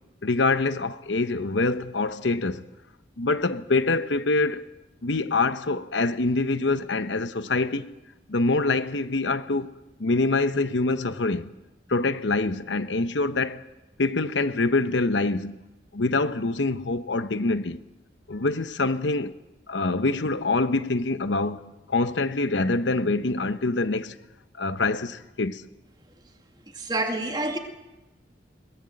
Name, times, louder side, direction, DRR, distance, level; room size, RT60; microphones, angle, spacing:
voice 1, 0.2-2.7 3.2-4.7 5.0-7.9 8.3-9.7 10.0-11.5 11.9-13.6 14.0-15.6 15.9-17.8 18.3-19.4 19.7-21.6 21.9-24.1 24.6-25.6, left 3 dB, 90° left, 1.0 m, -25 dB
voice 2, 26.7-27.6, right 2 dB, 25° right, 2.3 m, -27 dB
22.0 x 19.0 x 7.9 m
head